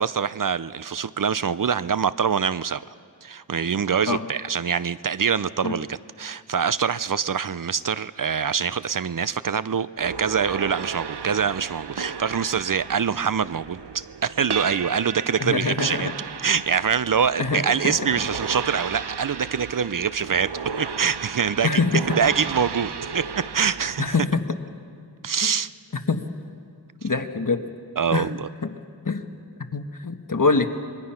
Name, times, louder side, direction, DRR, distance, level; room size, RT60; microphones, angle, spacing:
voice 1, 0.0-2.8 3.2-16.1 16.4-20.5 20.8-21.8 22.2-24.1 25.2-25.7 28.0-28.5, right 7 dB, 55° right, 16 dB, 0.5 m, -24 dB
sound 1, 10.0-24.2, right 5 dB, 75° right, 0.9 m, -34 dB
voice 2, 15.4-16.1 17.4-18.0 21.6-22.2 24.0-24.4 26.1-26.3 27.0-27.6 28.1-28.3 28.6-28.7 29.0-29.2 29.6-30.7, left 4 dB, 50° left, 6 dB, 1.5 m, -24 dB
26.0 x 22.0 x 5.8 m, 2.2 s
wide cardioid pair, 45°, 40 cm